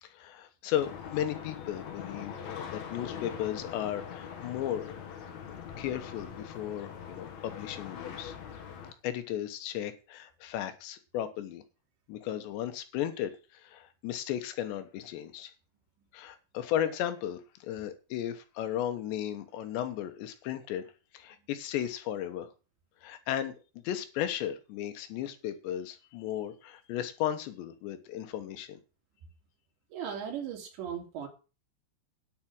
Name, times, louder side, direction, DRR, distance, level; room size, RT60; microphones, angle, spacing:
voice 1, 0.0-5.0 5.8-8.4 9.0-11.6 12.1-15.5 16.1-20.9 21.1-22.5 23.0-23.5 23.9-28.8, left 11 dB, 85° left, 3.5 m, -35 dB
sound 1, 0.8-8.9, left 7 dB, 55° left, 2.4 m, -42 dB
voice 2, 29.9-31.3, right 8 dB, 85° right, 5.2 m, -37 dB
10.5 x 8.5 x 6.1 m
omnidirectional pair, 4.9 m